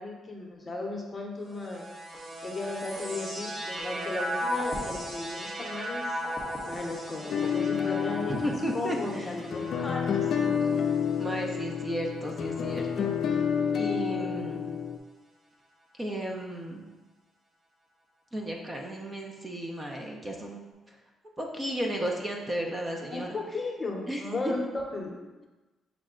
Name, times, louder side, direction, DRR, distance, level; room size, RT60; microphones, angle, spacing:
voice 1, 0.0-1.9 2.4-6.1 6.6-8.4 8.7-10.6 23.1-24.6 24.9-25.1, left 3 dB, 30° left, 0 dB, 0.8 m, -35 dB
sound 1, 1.5-13.0 13.8-14.5, equal, 40° right, 1.1 m, -37 dB
sound 2, 7.3-15.0, left 7 dB, 65° left, 0.3 m, -29 dB
voice 2, 8.4-9.3 10.7-10.9 11.2-13.4 13.7-14.7 16.0-16.8 18.3-20.6 21.4-23.4 24.1-24.5, right 1 dB, 20° right, 0 dB, 0.6 m, -34 dB
6.0 x 2.2 x 3.7 m, 1.1 s
cardioid pair, 90°, 0 cm